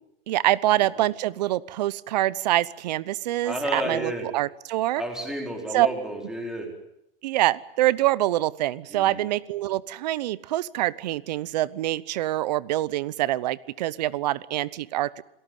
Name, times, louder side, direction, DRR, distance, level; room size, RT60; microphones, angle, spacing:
voice 1, 0.3-5.0 5.7-5.9 7.2-15.1, right 15 dB, 45° right, 20 dB, 0.9 m, -25 dB
voice 2, 3.4-4.3 5.0-6.7 8.9-9.2, equal, ahead, 1 dB, 4.3 m, -31 dB
26.5 x 18.0 x 9.3 m, 0.79 s
supercardioid pair, 165°, 29 cm